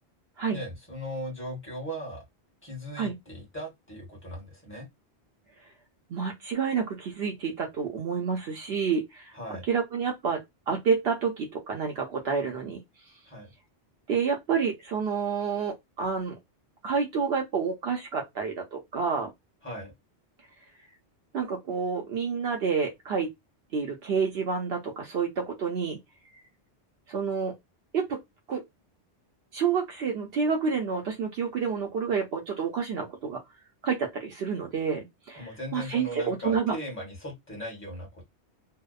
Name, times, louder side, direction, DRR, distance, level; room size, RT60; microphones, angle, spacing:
voice 1, 0.5-2.2 2.6-4.9 9.3-9.6 13.3-13.5 19.6-19.9 35.3-38.2, equal, 10° left, 1.0 m, -38 dB
voice 2, 6.1-9.3 9.7-12.8 14.1-16.4 16.8-19.3 21.3-23.3 23.7-26.0 27.1-27.5 27.9-28.2 28.5-28.6 29.5-33.4 33.8-36.7, right 6 dB, 70° right, 0.8 m, -29 dB
2.8 x 2.0 x 2.3 m
omnidirectional pair, 1.1 m